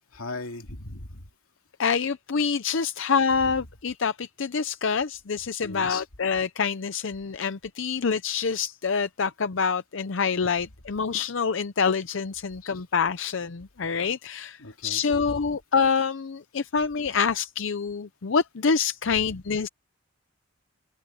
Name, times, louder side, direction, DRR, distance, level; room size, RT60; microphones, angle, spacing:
voice 1, 0.1-1.3 3.4-3.5 5.6-6.0 12.6-12.8 14.6-15.4, left 3 dB, 90° left, 2.4 m, -38 dB
voice 2, 1.8-19.7, left 5 dB, 60° left, 0.6 m, -26 dB
open air
head